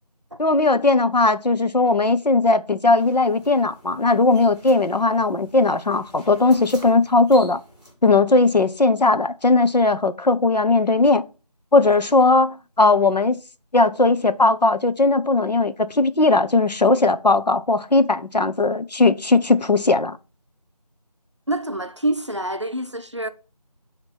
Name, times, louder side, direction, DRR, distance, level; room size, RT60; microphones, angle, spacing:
voice 1, 0.4-7.6 8.0-11.2 11.7-13.4 13.7-20.2, left 3 dB, 85° left, 0.7 m, -18 dB
sound 1, 2.9-7.9, right 1 dB, 10° left, 3.3 m, -47 dB
voice 2, 21.5-23.3, right 1 dB, 45° right, 0.5 m, -26 dB
8.2 x 3.0 x 5.9 m
figure-of-eight pair, 175°, 21 cm